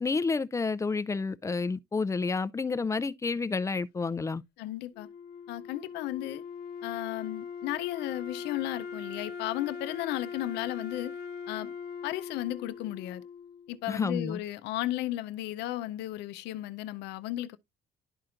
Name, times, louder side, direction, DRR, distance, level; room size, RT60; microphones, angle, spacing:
voice 1, 0.0-4.4 13.9-14.4, left 4 dB, 20° left, 0.4 m, -30 dB
voice 2, 4.6-5.1 5.5-6.4 6.8-11.1 11.5-11.7 12.0-13.2 13.7-17.6, left 15 dB, 90° left, 0.6 m, -34 dB
Wind instrument woodwind instrument, 4.9-14.0, left 6 dB, 70° left, 1.0 m, -41 dB
12.0 x 4.3 x 2.5 m
cardioid pair, 110°, 17 cm